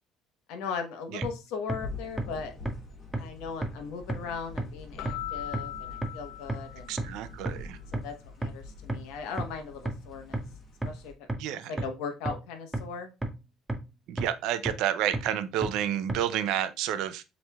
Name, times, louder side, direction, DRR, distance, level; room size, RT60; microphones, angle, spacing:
voice 1, 0.5-2.5 3.1-6.9 7.9-10.4 10.8-11.1 11.7-13.1, left 5 dB, 90° left, 1.0 m, -38 dB
sound 1, 1.2-1.3 1.7-1.8 2.2-2.3 2.7-2.8 3.1-3.2 3.6-3.7 4.1-4.2 4.6-4.7 5.1-5.2 5.5-5.6 6.0-6.1 6.5-6.6 7.0-7.1 7.5-7.6 7.9-8.0 8.4-8.5 8.9-9.0 9.4-9.5 9.9-10.0 10.3-10.4 10.8-10.9 11.3-11.4 11.8-11.9 12.3-12.4 12.7-12.8 13.2-13.3 13.7-13.8 14.2-14.3 14.7-14.8 15.1-15.2 15.6-15.7 16.1-16.2, right 2 dB, 10° right, 0.6 m, -29 dB
sound 2, 1.8-11.1, left 3 dB, 35° left, 1.2 m, -46 dB
Keyboard (musical), 5.0-7.4, left 14 dB, 60° left, 0.4 m, -40 dB
voice 2, 6.9-7.8 11.4-11.7 14.1-17.2, right 11 dB, 70° right, 0.5 m, -30 dB
7.1 x 3.2 x 2.3 m
cardioid pair, 165°, 0 cm